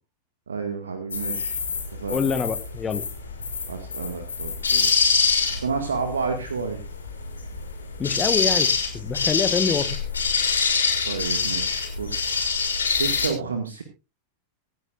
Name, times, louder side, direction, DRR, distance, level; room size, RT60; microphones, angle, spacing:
voice 1, 0.5-1.6 1.9-2.2 3.7-5.1 5.5-6.8 11.1-12.3 12.9-13.8, right 5 dB, 70° right, 6 dB, 2.0 m, -30 dB
sound 1, 1.1-13.3, left 5 dB, 75° left, 4.6 m, -24 dB
voice 2, 2.1-3.0 8.0-8.7 8.9-10.0, left 6 dB, 20° left, 12 dB, 1.3 m, -25 dB
25.0 x 9.7 x 2.6 m, 0.29 s
figure-of-eight pair, 90°, 0 cm